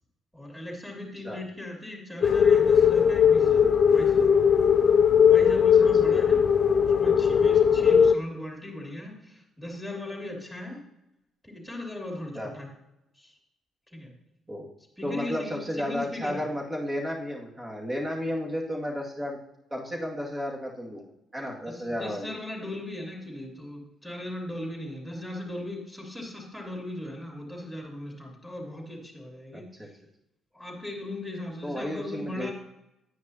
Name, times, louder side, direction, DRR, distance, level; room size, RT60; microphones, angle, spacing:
voice 1, 0.3-4.5 5.2-6.4 7.0-10.8 11.4-12.7 13.2-13.4 13.9-14.1 15.0-16.4 21.7-29.7 30.5-32.5, left 1 dB, ahead, -1 dB, 3.1 m, -38 dB
sound 1, 2.2-8.1, left 7 dB, 50° left, 0.4 m, -19 dB
voice 2, 15.0-19.4 19.7-21.0 21.3-22.3 29.5-29.9 31.6-32.5, left 1 dB, 20° right, -1 dB, 2.1 m, -32 dB
9.7 x 9.3 x 2.8 m, 0.88 s
figure-of-eight pair, 45°, 0 cm